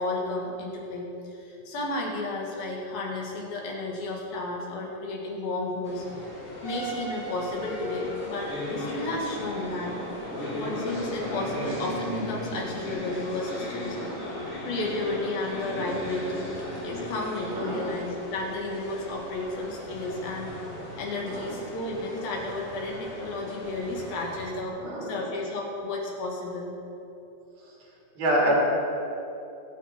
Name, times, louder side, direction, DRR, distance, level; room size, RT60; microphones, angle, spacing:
voice 1, 0.0-6.1 6.6-9.9 10.5-14.0 14.7-16.5 16.8-20.5 21.0-26.7, left 2 dB, 80° left, -2 dB, 3.9 m, -32 dB
sound 1, 5.8-24.5, left 1 dB, 25° left, 2.0 m, -36 dB
voice 2, 10.2-10.6 13.9-14.5 17.5-17.9 21.2-21.6 24.8-25.3 28.2-28.5, right 1 dB, 85° right, -3 dB, 4.8 m, -29 dB
23.0 x 8.4 x 4.4 m, 2.9 s
omnidirectional pair, 4.1 m